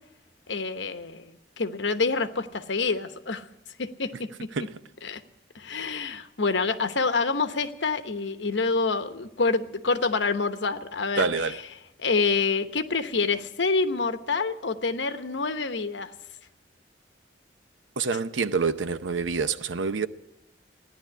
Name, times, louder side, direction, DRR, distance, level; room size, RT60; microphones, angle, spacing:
voice 1, 0.5-3.5 3.8-4.3 5.0-5.2 5.5-11.2 12.0-16.1, left 4 dB, 80° left, 1.0 m, -27 dB
voice 2, 11.2-11.6 18.0-20.1, right 4 dB, 90° right, 0.7 m, -26 dB
14.5 x 10.5 x 9.5 m
head